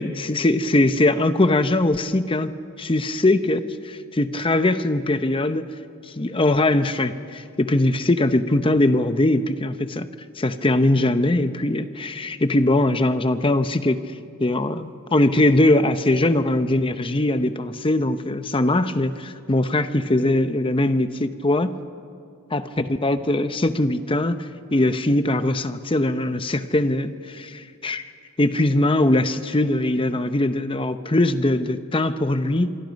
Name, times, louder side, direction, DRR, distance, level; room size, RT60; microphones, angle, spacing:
voice 1, 0.0-5.7 6.1-10.1 10.4-14.0 14.4-21.7 22.5-28.0 28.4-32.7, left 1 dB, 25° left, 11 dB, 0.8 m, -21 dB
25.5 x 24.5 x 5.3 m, 2.3 s
head